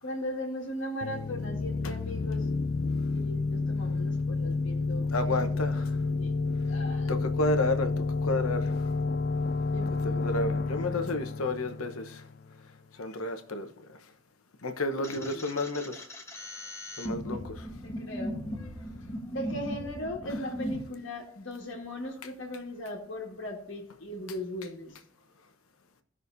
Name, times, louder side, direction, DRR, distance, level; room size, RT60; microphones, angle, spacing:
voice 1, 0.0-2.7 3.1-5.7 6.1-7.1 9.7-10.0 14.7-15.4 17.3-17.4 17.7-18.4 19.3-25.0, equal, 60° left, -1 dB, 1.8 m, -38 dB
sound 1, 1.0-12.6, left 3 dB, 45° left, 0.3 m, -30 dB
voice 2, 5.1-5.9 7.1-7.9 8.2-8.7 10.0-12.2 13.0-13.7 14.6-16.0 17.0-17.7, left 2 dB, 90° left, 7 dB, 1.1 m, -31 dB
sound 2, 15.0-20.8, left 1 dB, 15° left, 1.1 m, -38 dB
16.5 x 6.2 x 2.7 m, 0.69 s
head